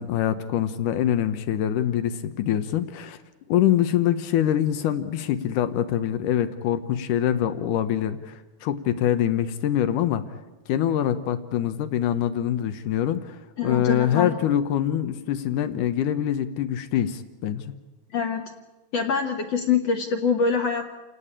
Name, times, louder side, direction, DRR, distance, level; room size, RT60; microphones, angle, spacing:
voice 1, 0.0-3.2 3.5-10.2 10.7-17.7, left 11 dB, 85° left, 10 dB, 1.8 m, -24 dB
voice 2, 13.6-14.4 18.1-18.4 18.9-20.9, left 5 dB, 65° left, 5 dB, 1.6 m, -24 dB
29.0 x 18.0 x 8.8 m, 1.1 s
omnidirectional pair, 5.1 m